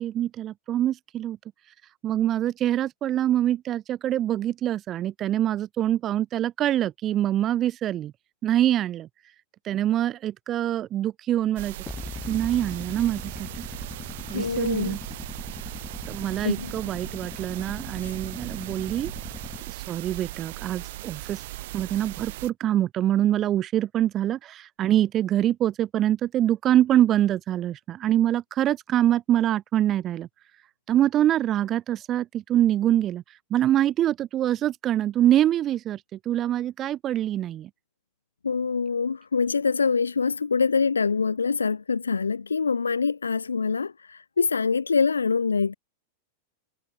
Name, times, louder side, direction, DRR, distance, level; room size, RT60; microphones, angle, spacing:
voice 1, 0.0-1.4 2.0-8.1 8.4-9.1 9.6-11.7 12.3-13.5 14.3-15.0 16.1-19.1 19.7-21.4 21.7-30.3 30.9-37.7, right 12 dB, 30° right, 3.2 m, -25 dB
sound 1, 11.6-22.5, right 18 dB, 50° right, 4.0 m, -38 dB
sound 2, 11.9-19.6, left 4 dB, 15° left, 5.9 m, -40 dB
voice 2, 14.3-15.0 16.4-16.7 18.0-18.1 38.4-45.7, left 5 dB, 75° left, 2.3 m, -25 dB
figure-of-eight pair, 90°, 0 cm